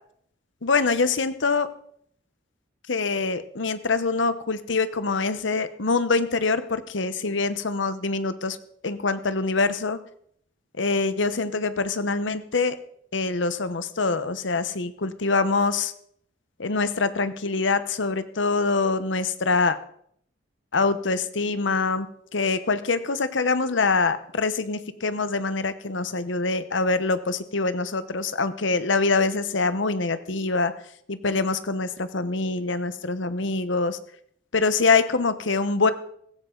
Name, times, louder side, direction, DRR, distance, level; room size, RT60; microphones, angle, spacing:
voice 1, 0.6-1.7 2.9-8.6 8.8-10.0 10.8-12.8 13.1-15.9 16.6-19.8 20.7-22.1 22.3-30.7 31.1-34.0 34.5-35.9, left 3 dB, 75° left, 12 dB, 1.0 m, -24 dB
16.5 x 15.0 x 3.9 m, 0.67 s
head